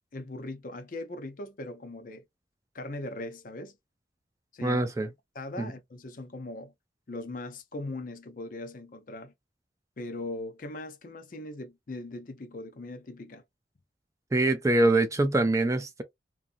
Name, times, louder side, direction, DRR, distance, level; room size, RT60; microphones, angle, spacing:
voice 1, 0.1-2.3 2.7-3.8 4.5-4.8 5.3-6.7 7.1-9.3 10.0-13.4, left 2 dB, 50° left, 0.5 m, -39 dB
voice 2, 4.6-5.1 14.3-16.0, right 2 dB, 20° right, 0.3 m, -24 dB
2.6 x 2.5 x 2.5 m
head